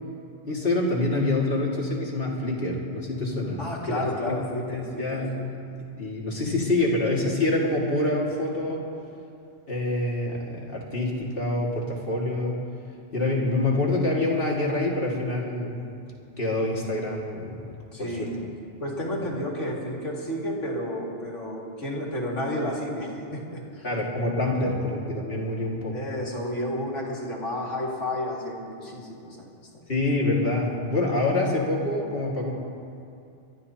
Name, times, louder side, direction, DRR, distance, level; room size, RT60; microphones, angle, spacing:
voice 1, 0.5-3.6 3.9-4.4 4.7-5.3 6.0-8.8 9.7-12.6 13.1-15.8 16.4-17.6 18.0-18.5 23.8-26.0 29.9-32.5, left 2 dB, 45° left, -3 dB, 2.3 m, -26 dB
voice 2, 3.6-5.2 17.9-18.3 18.8-23.9 25.9-29.4 29.7-29.9, left 1 dB, 70° left, -3 dB, 2.8 m, -31 dB
25.5 x 13.0 x 2.9 m, 2.6 s
omnidirectional pair, 1.3 m